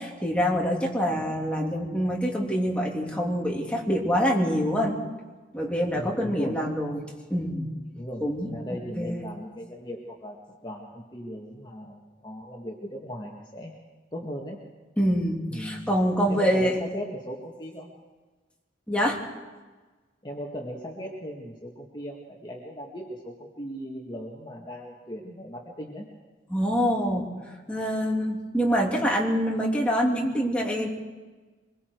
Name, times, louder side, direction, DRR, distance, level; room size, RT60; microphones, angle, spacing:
voice 1, 0.0-5.0 5.5-7.0 7.3-7.7 8.2-9.2 15.0-16.8 18.9-19.2 26.5-27.3 27.7-30.9, equal, 5° left, -2 dB, 3.0 m, -25 dB
voice 2, 5.9-6.6 7.9-10.4 10.6-13.7 14.1-14.6 15.5-15.9 16.2-17.9 20.2-26.1, equal, 25° left, -2 dB, 1.9 m, -38 dB
24.5 x 22.5 x 4.7 m, 1.3 s
head